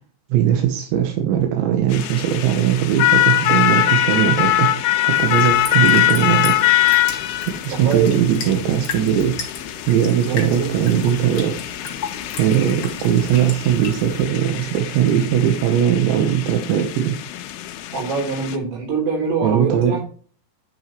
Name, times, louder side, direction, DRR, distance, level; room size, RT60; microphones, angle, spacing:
voice 1, 0.3-6.8 7.5-9.3 9.9-11.6 12.4-17.2 19.4-20.0, right 9 dB, 90° right, 3 dB, 3.4 m, -19 dB
sound 1, 1.9-18.6, left 14 dB, 90° left, 2.1 m, -22 dB
sound 2, 5.1-14.2, left 5 dB, 40° left, 2.1 m, -35 dB
voice 2, 7.7-8.2 10.3-10.9 17.9-20.0, right 5 dB, 65° right, 0 dB, 5.3 m, -24 dB
11.0 x 6.1 x 3.1 m, 0.41 s
omnidirectional pair, 5.1 m